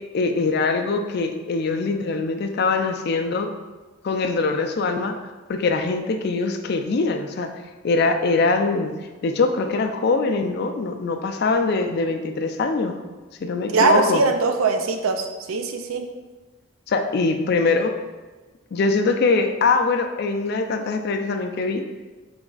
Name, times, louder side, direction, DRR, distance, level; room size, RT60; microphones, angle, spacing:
voice 1, 0.1-3.5 4.0-5.2 5.5-7.5 7.8-9.0 9.2-13.0 13.4-14.2 16.9-17.9 18.7-21.8, left 3 dB, 50° left, 6 dB, 0.3 m, -22 dB
voice 2, 13.7-16.1, right 4 dB, 80° right, 5 dB, 0.4 m, -21 dB
3.4 x 3.1 x 3.8 m, 1.3 s
head